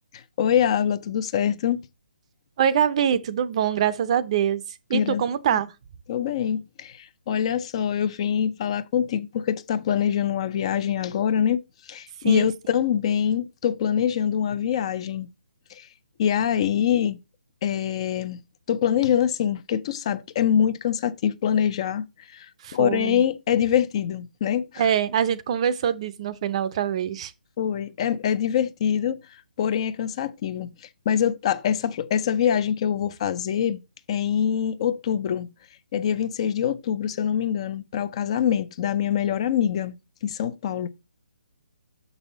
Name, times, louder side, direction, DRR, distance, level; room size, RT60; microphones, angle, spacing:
voice 1, 0.1-1.8 4.9-5.2 6.1-15.3 15.7-15.9 16.2-17.2 17.6-18.4 18.7-24.9 27.6-29.2 29.6-33.8 34.1-35.5 35.9-40.0 40.2-40.9, left 9 dB, 35° left, 0.5 m, -24 dB
voice 2, 2.6-4.6 4.9-5.7 12.2-12.5 22.6-23.2 24.8-27.3, right 9 dB, 35° right, 0.6 m, -24 dB
6.9 x 5.5 x 4.0 m
hypercardioid pair, 155°, 5 cm